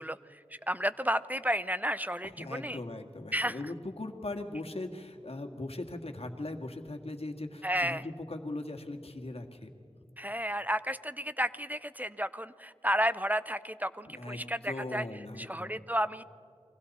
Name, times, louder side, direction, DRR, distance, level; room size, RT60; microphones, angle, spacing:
voice 1, 0.0-2.8 3.3-3.7 7.6-8.1 10.2-16.2, equal, 15° right, 15 dB, 0.5 m, -32 dB
voice 2, 2.4-9.7 14.1-15.8, left 2 dB, 70° left, 5 dB, 1.8 m, -39 dB
29.5 x 22.5 x 4.2 m, 2.5 s
wide cardioid pair, 50°, 11 cm